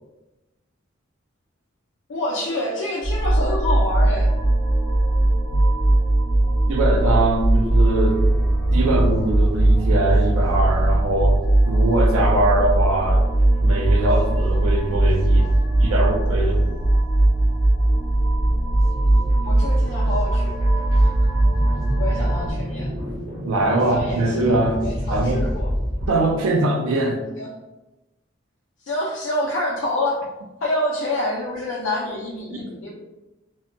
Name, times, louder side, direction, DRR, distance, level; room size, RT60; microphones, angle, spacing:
voice 1, 2.1-4.3 19.4-20.6 20.9-21.1 21.9-22.9 23.8-25.7 26.5-26.6 27.4-27.5 28.8-30.2 30.6-32.9, left 1 dB, 65° left, -5 dB, 0.4 m, -27 dB
sound 1, 3.0-22.5, right 1 dB, 10° left, 0.7 m, -19 dB
voice 2, 6.7-8.2 8.7-13.3 13.6-15.5 15.8-16.8 23.4-24.8 25.1-25.5 26.0-27.2 32.5-32.6, right 2 dB, 85° right, 2 dB, 0.4 m, -22 dB
sound 2, 9.0-9.3 9.7-10.9 11.2-11.3 11.5-16.3 16.8-16.9 17.3-26.1, equal, 45° right, 0.9 m, -32 dB
2.7 x 2.1 x 2.5 m, 1.0 s
head